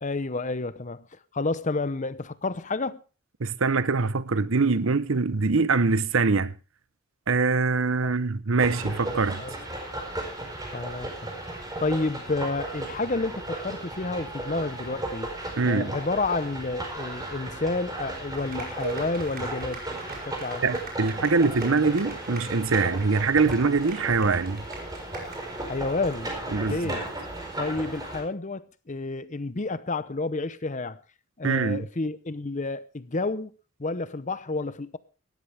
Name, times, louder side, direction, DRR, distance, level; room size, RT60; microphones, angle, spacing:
voice 1, 0.0-1.1 1.3-3.0 8.0-8.1 9.4-9.5 10.7-11.1 11.8-15.3 15.6-19.8 20.2-20.6 25.6-27.0 27.6-31.0 31.4-33.5 33.8-35.0, left 3 dB, 35° left, 0.8 m, -30 dB
voice 2, 3.4-6.5 7.3-9.4 15.6-15.9 20.6-24.6 26.5-26.9 31.4-31.8, right 4 dB, 65° right, 0.8 m, -23 dB
sound 1, 8.6-28.2, right 1 dB, 20° right, 4.6 m, -35 dB
sound 2, 18.3-25.6, right 3 dB, 45° right, 5.2 m, -44 dB
sound 3, 18.8-20.9, right 4 dB, 90° right, 1.2 m, -41 dB
18.5 x 13.5 x 3.4 m
head